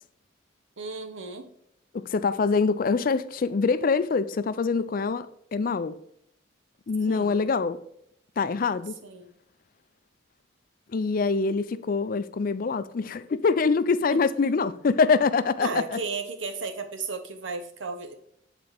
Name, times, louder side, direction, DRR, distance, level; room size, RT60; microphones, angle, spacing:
voice 1, 0.8-1.5 7.1-7.4 9.0-9.3 14.1-14.2 15.6-18.1, right 3 dB, 75° right, 1.0 m, -34 dB
voice 2, 1.9-6.0 6.9-7.8 8.4-9.0 10.9-16.0, left 4 dB, 45° left, 0.4 m, -25 dB
7.7 x 4.1 x 4.8 m
head